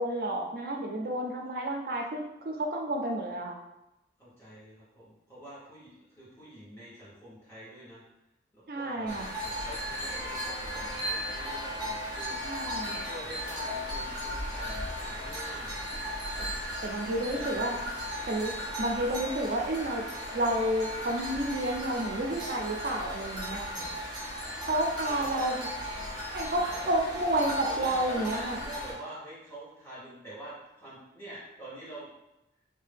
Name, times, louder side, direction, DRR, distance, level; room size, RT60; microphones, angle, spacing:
voice 1, 0.0-3.6 8.7-9.3 12.4-13.0 16.4-16.5 16.8-17.8 18.3-20.0 20.3-23.6 24.7-25.6 26.3-28.6, right 1 dB, 55° right, 1 dB, 0.4 m, -30 dB
voice 2, 4.2-8.0 8.5-15.8 17.1-17.8 23.5-23.8 25.1-25.4 26.5-27.1 27.4-32.1, right 1 dB, 15° left, -10 dB, 1.2 m, -46 dB
sound 1, 9.1-28.9, equal, 20° right, 0.7 m, -36 dB
Vehicle horn car horn honking, 10.0-16.2, equal, 45° left, 1.2 m, -49 dB
2.7 x 2.2 x 3.4 m, 0.91 s
head